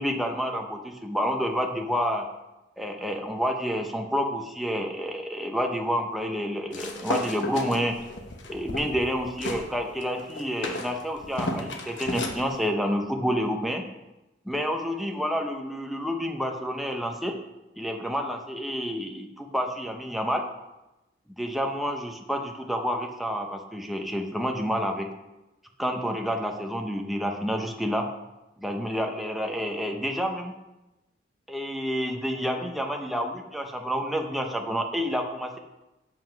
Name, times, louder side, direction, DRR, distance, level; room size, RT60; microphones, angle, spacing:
voice 1, 0.0-2.3 2.8-7.9 8.5-13.8 14.5-17.3 17.8-20.4 21.4-25.1 25.8-28.1 28.6-30.5 31.5-35.6, equal, ahead, 2 dB, 0.8 m, -29 dB
sound 1, 6.7-9.7 10.0-12.4, left 1 dB, 75° left, 1.1 m, -33 dB
7.5 x 5.6 x 5.8 m, 1.0 s
head